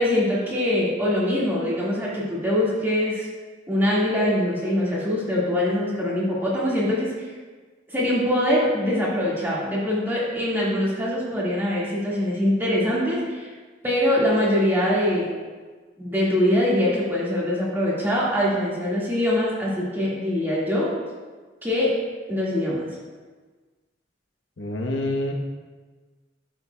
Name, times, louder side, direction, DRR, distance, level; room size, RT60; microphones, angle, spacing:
voice 1, 0.0-3.3 3.7-7.3 7.9-13.5 13.8-15.3 16.0-20.9 21.6-21.9 22.3-22.8, left 1 dB, 10° right, -7 dB, 1.8 m, -23 dB
voice 2, 24.6-25.3, left 1 dB, 80° left, 1 dB, 1.0 m, -27 dB
11.0 x 7.1 x 2.2 m, 1.4 s
head